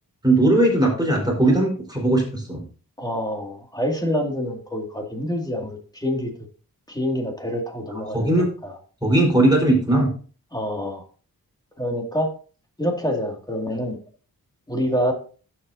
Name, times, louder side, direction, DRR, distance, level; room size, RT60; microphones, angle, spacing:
voice 1, 0.2-2.6 8.1-8.5 9.0-10.1, right 1 dB, 10° right, -1 dB, 4.2 m, -18 dB
voice 2, 3.0-6.3 6.9-8.8 10.5-11.0 11.8-12.3 12.8-14.0 14.7-15.1, equal, 10° left, 2 dB, 2.2 m, -26 dB
11.0 x 7.7 x 2.7 m, 0.39 s
wide cardioid pair, 105°, 37 cm